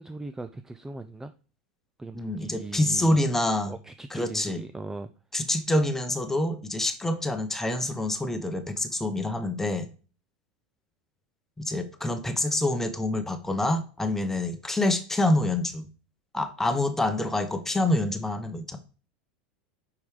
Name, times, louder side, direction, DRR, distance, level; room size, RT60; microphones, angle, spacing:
voice 1, 0.0-1.3 2.0-3.2 3.7-5.1, right 2 dB, 10° right, 9 dB, 0.4 m, -39 dB
voice 2, 2.1-3.7 4.1-4.6 5.3-9.9 11.6-15.9 16.3-18.8, left 1 dB, 10° left, 8 dB, 1.0 m, -26 dB
5.2 x 4.8 x 4.9 m, 0.37 s
supercardioid pair, 110°, 5 cm